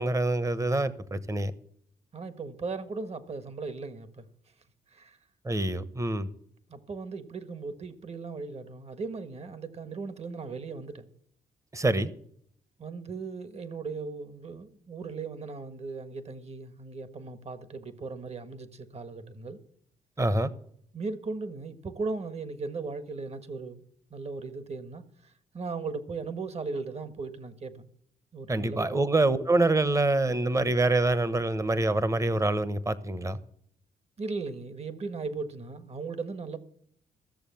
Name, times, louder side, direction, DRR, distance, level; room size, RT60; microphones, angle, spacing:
voice 1, 0.0-1.5 5.4-6.3 11.7-12.1 20.2-20.5 28.5-33.4, right 2 dB, 20° right, 1.1 m, -26 dB
voice 2, 2.1-4.3 4.9-5.2 6.7-11.1 12.8-19.6 20.9-23.8 24.1-27.9 28.3-29.1 34.2-36.6, right 4 dB, 40° right, 1.5 m, -37 dB
14.5 x 7.0 x 7.0 m
cardioid pair, 75°, 15 cm